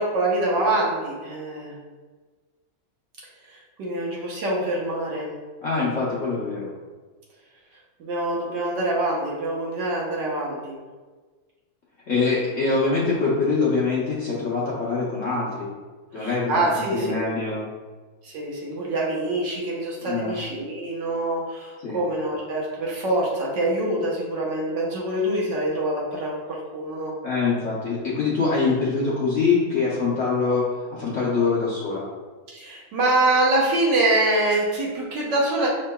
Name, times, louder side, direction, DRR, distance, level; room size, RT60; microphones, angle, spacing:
voice 1, 0.0-1.8 3.5-5.3 8.0-10.8 16.1-17.2 18.2-27.1 32.5-35.7, right 2 dB, 65° right, -4 dB, 1.5 m, -25 dB
voice 2, 5.6-6.7 12.1-15.7 16.1-16.5 16.9-17.7 20.1-20.4 21.8-22.0 27.2-30.7 30.9-32.1, left 4 dB, 55° left, -7 dB, 0.9 m, -24 dB
5.9 x 3.7 x 2.2 m, 1.4 s
omnidirectional pair, 2.1 m